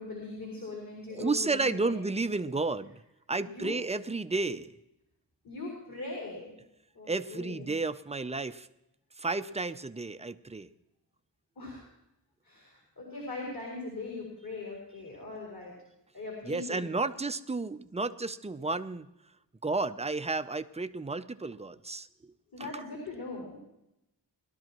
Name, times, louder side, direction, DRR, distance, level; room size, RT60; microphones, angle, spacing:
voice 1, 0.0-1.9 2.3-2.4 3.4-3.8 5.4-6.5 6.9-7.7 11.6-11.9 12.4-15.7 16.1-17.1 22.5-23.6, left 3 dB, 50° left, -2 dB, 4.3 m, -40 dB
voice 2, 1.1-3.0 3.3-4.7 7.1-8.7 9.2-10.7 16.5-19.1 19.6-22.3 22.6-22.8, right 3 dB, 15° right, 11 dB, 0.5 m, -32 dB
20.5 x 12.0 x 3.0 m, 0.86 s
wide cardioid pair, 80°, 43 cm